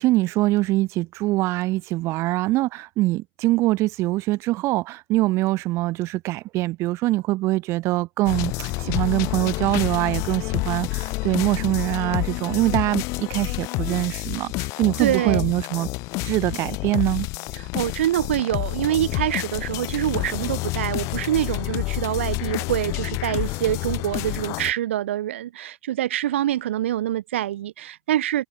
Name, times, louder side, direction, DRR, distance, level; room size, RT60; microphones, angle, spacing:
voice 1, 0.0-15.9 16.2-17.3, right 18 dB, 45° right, 1.2 m, -23 dB
sound 1, 8.3-24.7, left 24 dB, 50° left, 2.2 m, -28 dB
voice 2, 15.0-15.5 17.6-28.5, right 12 dB, 85° right, 2.5 m, -25 dB
supercardioid pair, 120°, 6 cm